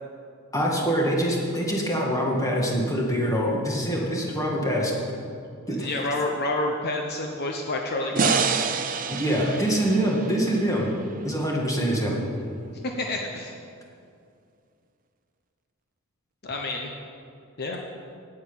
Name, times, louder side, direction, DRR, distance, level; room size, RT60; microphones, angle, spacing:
voice 1, 0.5-5.0 5.7-5.9 8.1-8.3 9.1-10.9 11.2-12.2, equal, 15° left, -2 dB, 2.0 m, -24 dB
voice 2, 5.6-8.6 9.4-9.6 12.8-13.5 16.4-16.9 17.6-17.8, left 2 dB, 50° left, 1 dB, 0.9 m, -29 dB
sound 1, 8.2-11.4, right 6 dB, 40° right, 0.6 m, -28 dB
9.0 x 8.8 x 8.9 m, 2.4 s
head